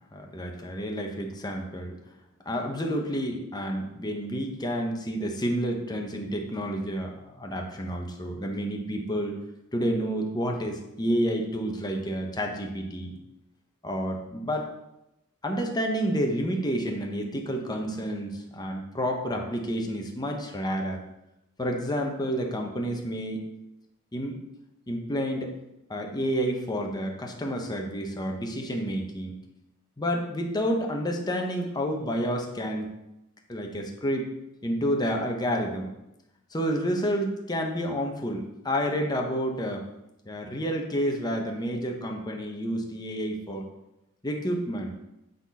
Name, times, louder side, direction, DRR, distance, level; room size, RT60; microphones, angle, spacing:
voice 1, 0.1-2.0 2.4-9.4 9.7-13.2 13.8-14.7 15.4-21.0 21.6-23.4 24.1-24.4 24.9-25.5 25.9-29.4 30.0-32.9 33.5-34.3 34.6-35.9 36.5-39.8 40.3-43.7 44.2-44.9, equal, 20° left, 1 dB, 1.0 m, -29 dB
8.8 x 4.0 x 4.2 m, 0.88 s
head